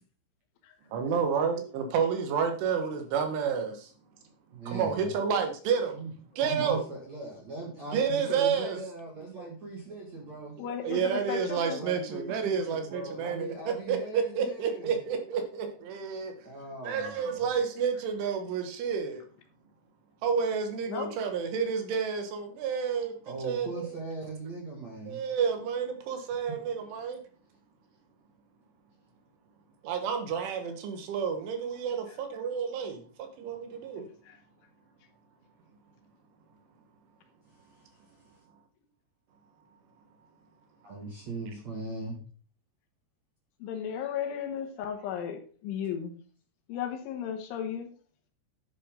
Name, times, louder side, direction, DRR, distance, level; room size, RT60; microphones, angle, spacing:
voice 1, 0.9-3.9 4.7-6.0 6.4-6.8 7.9-8.8 9.4-9.5 10.6-16.3 16.8-19.2 20.2-23.1 23.4-23.9 25.1-27.2 29.8-33.0 33.4-34.1, right 6 dB, 75° right, 6 dB, 3.6 m, -30 dB
voice 2, 4.5-5.1 5.9-6.1 6.4-10.6 11.7-15.0 16.4-17.5 23.2-25.2 40.8-42.2, right 3 dB, 55° right, -1 dB, 2.1 m, -39 dB
voice 3, 10.6-11.8 20.9-21.1 32.1-32.2 34.2-34.4 43.6-46.2 46.7-47.9, left 8 dB, 75° left, 5 dB, 3.5 m, -35 dB
11.5 x 8.5 x 3.7 m, 0.41 s
omnidirectional pair, 6.0 m